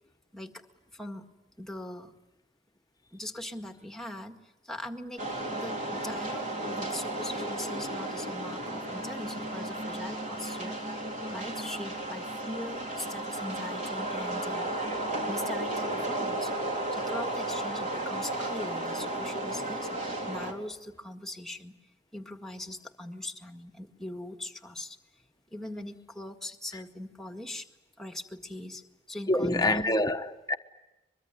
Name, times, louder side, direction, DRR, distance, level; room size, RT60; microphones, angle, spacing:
voice 1, 0.9-1.3 1.6-2.1 3.1-4.4 4.6-5.2 5.5-10.8 11.3-14.8 15.3-21.8 22.1-25.0 25.5-27.7 28.0-28.8 29.1-29.9, left 1 dB, ahead, 1.8 m, -41 dB
sound 1, 5.2-20.5, right 1 dB, 45° right, 3.9 m, -34 dB
voice 2, 29.3-30.6, left 1 dB, 20° left, 1.1 m, -26 dB
23.5 x 22.5 x 9.9 m
head